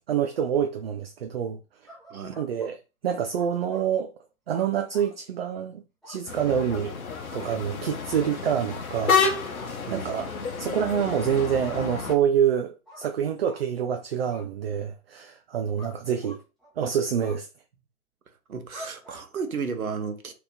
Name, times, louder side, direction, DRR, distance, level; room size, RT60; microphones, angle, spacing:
voice 1, 0.1-1.6 2.4-2.8 3.0-4.1 4.5-6.9 7.3-10.3 10.6-16.4 16.8-17.5, right 8 dB, 45° right, 0.4 m, -27 dB
sound 1, 1.9-2.7 3.3-3.9 4.5-5.1 6.0-6.2 6.5-6.7 7.4-7.5 8.1-8.2 8.7-8.9 9.5-9.7 10.8-11.4 11.9-12.1 12.9-13.0 13.4-13.6 14.3-14.5 15.8-16.0 16.2-16.7 17.2-17.4 18.7-19.2, left 1 dB, ahead, 0.9 m, -46 dB
sound 2, 6.3-12.1, left 5 dB, 70° left, 0.9 m, -29 dB
voice 2, 18.5-20.3, right 5 dB, 75° right, 1.0 m, -33 dB
2.9 x 2.9 x 3.6 m
figure-of-eight pair, 125°, 43 cm